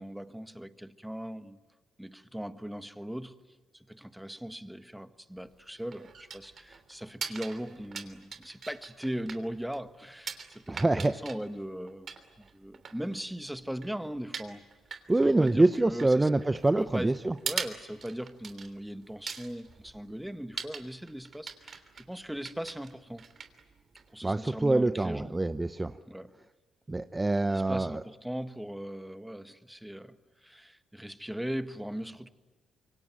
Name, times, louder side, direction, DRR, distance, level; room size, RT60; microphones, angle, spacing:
voice 1, 0.0-1.6 2.0-3.4 3.7-12.1 12.4-14.6 15.2-16.3 16.7-17.2 17.4-23.2 24.1-25.3 26.1-26.3 27.4-30.2 30.4-32.3, equal, 5° right, 1.6 m, -39 dB
sound 1, 5.4-24.4, right 5 dB, 50° right, 3.1 m, -43 dB
voice 2, 10.7-11.1 15.1-17.3 24.2-26.0 26.9-28.0, right 2 dB, 20° right, 0.9 m, -25 dB
27.0 x 24.0 x 9.1 m
hypercardioid pair, 50°, 0 cm